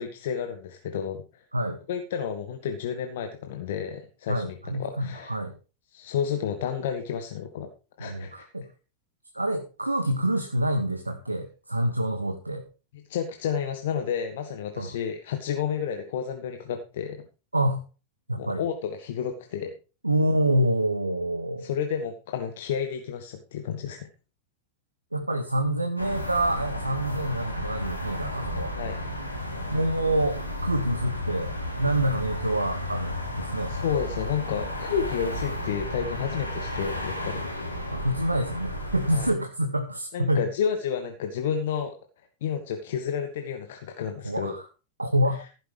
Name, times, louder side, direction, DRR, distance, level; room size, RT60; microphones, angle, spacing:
voice 1, 0.0-1.4 1.9-5.3 5.9-7.7 8.0-8.4 12.9-17.2 18.3-19.7 21.6-24.1 28.7-29.0 33.7-37.4 39.1-39.3 40.1-41.9 42.4-44.5, left 7 dB, 55° left, 6 dB, 1.5 m, -31 dB
voice 2, 4.3-5.5 8.0-8.7 9.3-12.6 14.8-14.9 17.5-17.8 18.3-18.6 20.0-21.7 25.1-28.8 29.7-33.7 37.9-40.4 44.2-44.6 45.0-45.4, right 1 dB, 85° right, 7 dB, 1.3 m, -27 dB
sound 1, 26.0-39.3, left 1 dB, 90° left, 3.1 m, -33 dB
15.5 x 10.0 x 3.4 m, 0.33 s
figure-of-eight pair, 90°, 0 cm